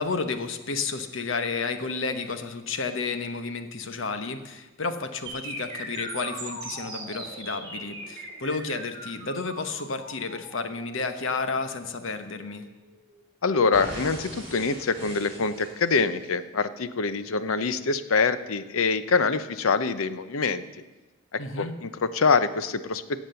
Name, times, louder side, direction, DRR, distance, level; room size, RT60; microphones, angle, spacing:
voice 1, 0.0-12.6 21.4-21.7, left 4 dB, 70° left, 9 dB, 1.1 m, -31 dB
sound 1, 5.3-13.2 13.7-16.3, right 2 dB, 30° right, 4.4 m, -40 dB
voice 2, 13.4-20.6 21.3-23.2, left 4 dB, 85° left, 13 dB, 0.7 m, -25 dB
17.0 x 7.3 x 6.9 m, 1.1 s
head